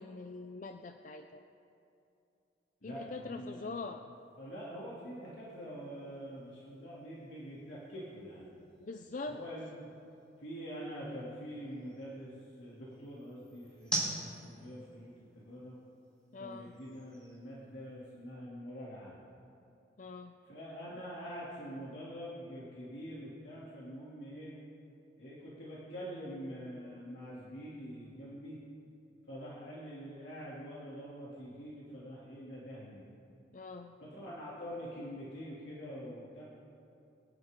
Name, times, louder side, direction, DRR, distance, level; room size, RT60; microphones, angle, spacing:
voice 1, 0.0-1.4 2.8-4.0 8.8-9.4 16.3-16.7 20.0-20.3 33.5-34.0, left 3 dB, 40° left, 6 dB, 0.4 m, -43 dB
voice 2, 2.8-3.9 4.4-8.6 9.3-9.9 10.4-12.3 12.6-14.1 14.4-15.8 16.4-19.2 20.4-24.5 25.2-28.6 29.3-33.1 34.0-36.4, equal, 70° left, -8 dB, 2.6 m, -45 dB
sound 1, 4.1-18.3, right 1 dB, 5° left, 3.5 m, -47 dB
23.0 x 11.0 x 3.7 m, 2.8 s
head